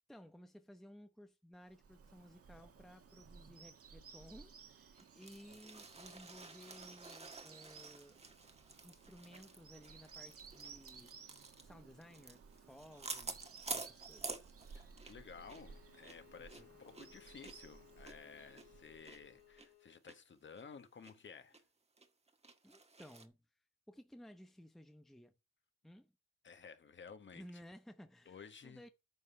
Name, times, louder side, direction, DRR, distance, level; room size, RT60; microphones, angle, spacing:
voice 1, 0.1-8.1 8.8-11.1 11.6-13.4 13.7-14.6 16.4-16.8 22.6-23.4 23.9-25.3 25.8-26.1 27.3-28.9, equal, ahead, 0.8 m, -57 dB
Bird vocalization bird call bird song, 1.6-19.6, right 6 dB, 50° right, 2.1 m, -58 dB
sound 1, 5.0-15.2 15.5-15.6 16.0-19.2 19.6-19.7 20.1-20.2 20.6-21.1 21.5-21.6 22.0-23.3, right 3 dB, 20° right, 1.6 m, -50 dB
voice 2, 14.7-21.6 26.4-27.4 28.3-28.8, left 6 dB, 40° left, 1.6 m, -55 dB
Bowed string instrument, 15.1-20.0, left 16 dB, 80° left, 2.6 m, -64 dB
9.5 x 5.5 x 5.6 m
cardioid pair, 90°, 30 cm